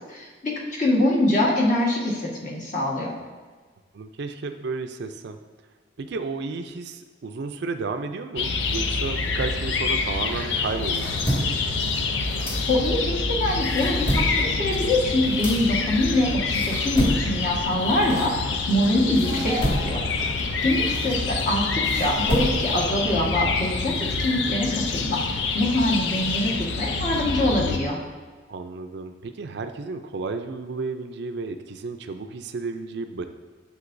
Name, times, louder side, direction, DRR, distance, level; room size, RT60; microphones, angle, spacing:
voice 1, 0.1-3.1 12.7-20.0 20.3-25.2 25.5-28.0, left 1 dB, 45° left, -2 dB, 1.5 m, -24 dB
voice 2, 3.9-5.4 6.0-11.2 20.2-20.3 20.9-21.2 28.5-33.3, right 4 dB, 65° right, 7 dB, 0.4 m, -32 dB
sound 1, 8.4-27.8, left 4 dB, 80° left, 0.6 m, -27 dB
sound 2, 10.6-13.1 13.5-18.8 19.1-22.9, equal, 30° left, 1.9 m, -30 dB
9.7 x 6.9 x 2.6 m, 1.4 s
head